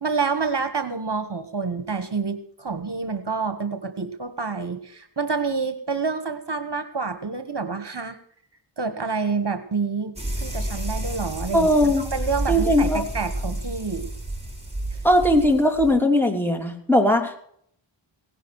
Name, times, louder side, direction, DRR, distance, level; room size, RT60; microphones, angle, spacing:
voice 1, 0.0-8.2 8.8-14.1 14.9-15.0, right 4 dB, 55° right, 9 dB, 1.4 m, -28 dB
sound 1, 10.2-15.9, right 1 dB, 10° right, 6.6 m, -30 dB
voice 2, 11.5-12.0 12.5-13.0 15.0-17.4, left 1 dB, 5° left, 3 dB, 3.0 m, -19 dB
17.5 x 11.0 x 4.7 m, 0.65 s
wide cardioid pair, 45°, 49 cm